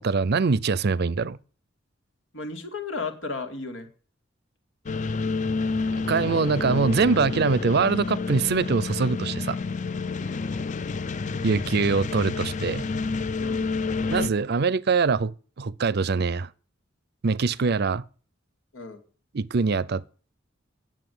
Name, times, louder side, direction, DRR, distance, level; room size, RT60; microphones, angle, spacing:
voice 1, 0.0-1.4 6.1-9.6 11.4-12.9 14.1-15.3 15.6-16.5 17.2-18.0 19.3-20.0, right 4 dB, 55° right, 0.5 m, -23 dB
voice 2, 2.3-3.9 6.2-6.3 10.2-10.5 13.4-13.7 18.7-19.0, left 3 dB, 85° left, 2.4 m, -35 dB
sound 1, 4.9-14.3, left 4 dB, 40° left, 0.5 m, -29 dB
9.9 x 7.5 x 9.4 m
head